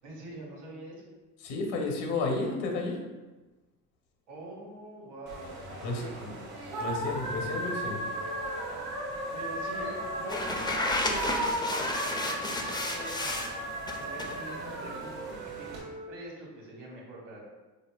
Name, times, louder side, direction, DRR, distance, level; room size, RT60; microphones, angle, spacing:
voice 1, 0.0-0.9 4.3-6.8 9.3-13.5 14.0-17.4, right 1 dB, 65° right, -3 dB, 1.4 m, -44 dB
voice 2, 1.4-3.0 5.8-6.3 6.8-8.0, left 3 dB, 65° left, 1 dB, 0.9 m, -32 dB
sound 1, 5.3-15.8, right 1 dB, 85° right, 0.9 m, -36 dB
Wind instrument woodwind instrument, 8.1-11.7 12.4-16.2, right 3 dB, 45° right, 0.7 m, -45 dB
sound 2, 10.3-13.5 13.9-14.4, left 2 dB, 10° left, 0.4 m, -32 dB
4.3 x 2.7 x 2.3 m, 1.2 s
hypercardioid pair, 55°, 44 cm